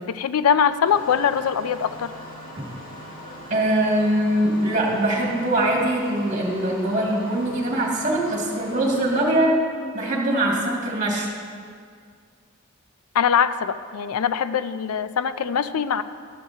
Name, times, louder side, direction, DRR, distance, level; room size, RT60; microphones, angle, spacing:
voice 1, 0.1-2.1 13.1-16.0, left 7 dB, 90° left, 13 dB, 0.4 m, -22 dB
Engine starting, 0.8-9.2, left 1 dB, 70° left, 2.8 m, -40 dB
voice 2, 3.5-9.6 9.9-11.3, right 1 dB, 35° right, -3 dB, 2.3 m, -22 dB
13.0 x 12.5 x 2.8 m, 2.1 s
head